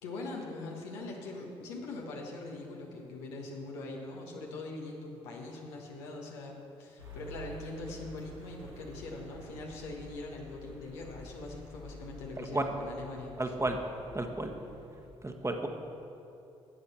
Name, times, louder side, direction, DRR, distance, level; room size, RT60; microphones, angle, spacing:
voice 1, 0.0-13.5, left 2 dB, 80° left, -1 dB, 1.3 m, -42 dB
sound 1, 7.0-15.1, right 1 dB, 85° right, 1.3 m, -50 dB
voice 2, 13.4-13.8 14.1-14.5 15.2-15.7, right 2 dB, 20° right, 4 dB, 1.3 m, -32 dB
12.5 x 8.2 x 4.3 m, 2.7 s
hypercardioid pair, 40°, 15 cm